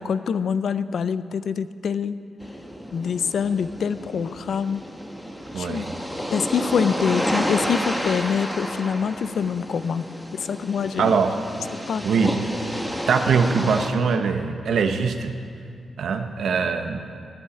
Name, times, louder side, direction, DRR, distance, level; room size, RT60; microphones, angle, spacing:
voice 1, 0.0-2.2 2.9-4.8 5.6-5.9 6.3-10.1 10.3-11.2 11.9-12.0, left 6 dB, 65° left, 14 dB, 0.4 m, -25 dB
sound 1, 2.4-13.9, equal, 5° left, 1.0 m, -30 dB
voice 2, 5.5-5.9 11.0-11.4 12.0-12.4 13.1-15.3 16.0-17.0, right 5 dB, 80° right, 6 dB, 0.9 m, -22 dB
11.0 x 8.7 x 9.7 m, 2.3 s
wide cardioid pair, 135°, 0 cm